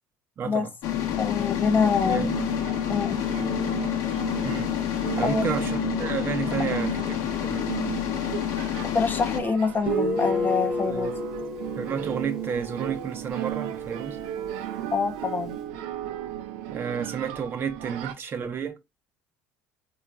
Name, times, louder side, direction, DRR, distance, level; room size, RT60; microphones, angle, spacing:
voice 1, 0.4-0.7 2.1-2.4 4.4-4.8 5.1-7.7 10.9-11.2 11.8-14.2 16.7-18.8, right 6 dB, 35° right, 0.6 m, -31 dB
sound 1, 0.8-9.4, left 11 dB, 65° left, 0.6 m, -28 dB
voice 2, 1.2-2.3 2.9-3.2 5.2-5.4 8.9-11.1 14.9-15.6, left 5 dB, 30° left, 0.4 m, -25 dB
sound 2, 2.0-18.1, right 12 dB, 85° right, 0.4 m, -35 dB
Guitar, 9.9-13.4, left 1 dB, 10° right, 0.8 m, -30 dB
3.0 x 2.3 x 2.3 m
supercardioid pair, 105°, 6 cm